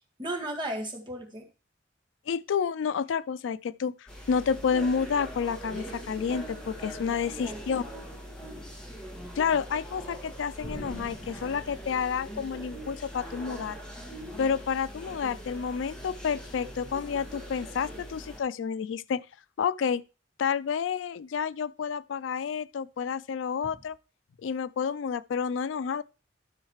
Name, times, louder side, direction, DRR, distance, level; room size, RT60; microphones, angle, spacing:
voice 1, 0.2-1.5 7.1-7.8 23.6-23.7, right 1 dB, 25° right, 1.8 m, -36 dB
voice 2, 2.3-7.8 9.4-13.8 14.4-19.2 19.6-20.0 20.4-24.0 24.4-26.0, left 6 dB, 85° left, 0.4 m, -30 dB
sound 1, 4.1-18.4, equal, 5° left, 1.9 m, -41 dB
13.0 x 6.5 x 3.1 m
head